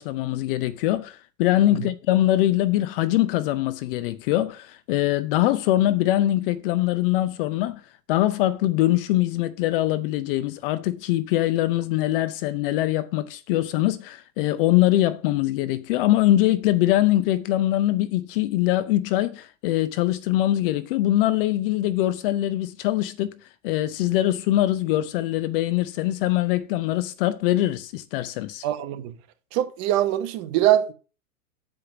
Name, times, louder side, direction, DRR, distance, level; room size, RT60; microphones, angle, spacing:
voice 1, 0.0-7.8 8.1-23.4 23.6-28.6, left 14 dB, 40° left, 0.6 m, -23 dB
voice 2, 28.6-29.1 29.5-30.9, right 13 dB, 35° right, 1.1 m, -22 dB
7.6 x 5.1 x 5.9 m
hypercardioid pair, 115°, 45 cm